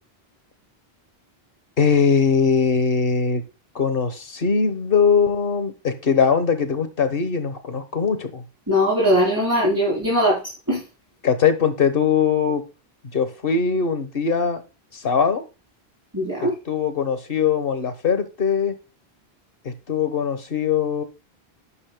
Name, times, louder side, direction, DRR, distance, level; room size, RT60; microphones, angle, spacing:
voice 1, 1.8-3.4 3.7-8.4 11.2-12.6 13.1-14.6 14.9-15.4 16.7-18.7 19.6-21.0, left 6 dB, 60° left, 10 dB, 1.4 m, -21 dB
voice 2, 8.7-10.4 10.7-10.8 16.1-16.6, equal, 20° right, -6 dB, 3.5 m, -20 dB
11.0 x 9.9 x 2.2 m, 0.31 s
omnidirectional pair, 1.1 m